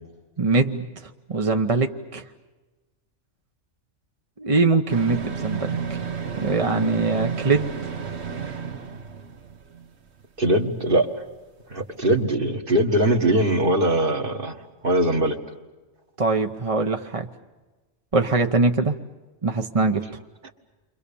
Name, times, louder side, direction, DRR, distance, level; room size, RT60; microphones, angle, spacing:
voice 1, 0.4-0.9 1.3-2.3 4.4-6.0 6.4-7.7 16.2-17.3 18.1-18.9 19.4-20.1, right 3 dB, 30° right, 4 dB, 1.0 m, -22 dB
sound 1, 4.9-9.9 10.2-10.3, right 6 dB, 60° right, 1.5 m, -31 dB
voice 2, 10.4-11.2 11.7-14.6 14.8-15.4, right 1 dB, 45° right, 4 dB, 2.0 m, -21 dB
30.0 x 24.5 x 7.0 m, 1.2 s
omnidirectional pair, 1.3 m